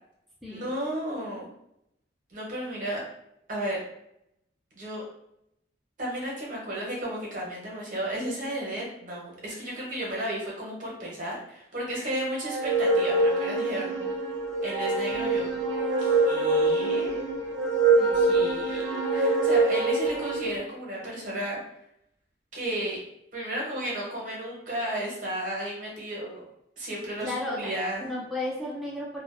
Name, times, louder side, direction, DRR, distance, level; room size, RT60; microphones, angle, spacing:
voice 1, 0.5-1.5 2.3-3.0 3.5-3.8 4.8-5.0 6.0-13.9 14.6-15.5 16.0-17.3 18.1-21.6 22.5-23.0 23.3-26.4 26.8-28.1, right 1 dB, 45° right, -4 dB, 0.8 m, -33 dB
sound 1, 12.4-20.6, right 3 dB, 85° right, 0.5 m, -25 dB
voice 2, 13.5-14.1 18.0-18.6 27.2-27.7 28.0-29.2, left 1 dB, ahead, -6 dB, 0.4 m, -35 dB
2.4 x 2.1 x 2.4 m, 0.78 s
head